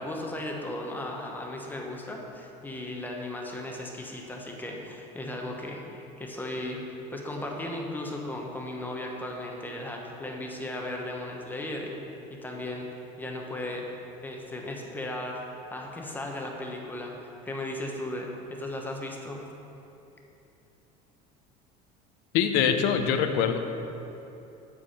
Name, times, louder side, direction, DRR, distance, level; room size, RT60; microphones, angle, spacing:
voice 1, 0.0-12.0 12.3-12.9 13.2-13.9 14.2-15.4 15.7-19.4, left 1 dB, 10° left, 0 dB, 1.1 m, -36 dB
voice 2, 22.3-23.6, left 8 dB, 70° left, 7 dB, 0.8 m, -23 dB
13.0 x 4.8 x 5.7 m, 2.9 s
cardioid pair, 140°, 17 cm